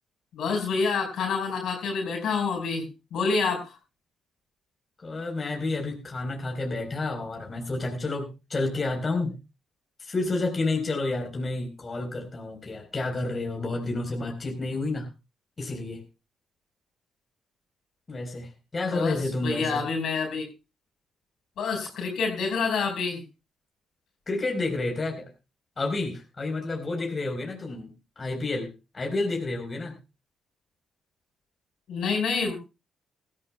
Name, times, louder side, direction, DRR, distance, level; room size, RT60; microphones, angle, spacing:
voice 1, 0.3-3.7 18.9-19.2 19.4-20.5 21.6-23.2 31.9-32.6, left 4 dB, 60° left, 3 dB, 4.8 m, -27 dB
voice 2, 5.0-9.3 10.0-15.1 15.6-16.0 18.1-19.8 24.3-25.2 25.8-27.9 28.2-30.0, left 2 dB, 35° left, 2 dB, 4.0 m, -30 dB
21.0 x 14.0 x 2.2 m, 0.29 s
figure-of-eight pair, 45°, 0 cm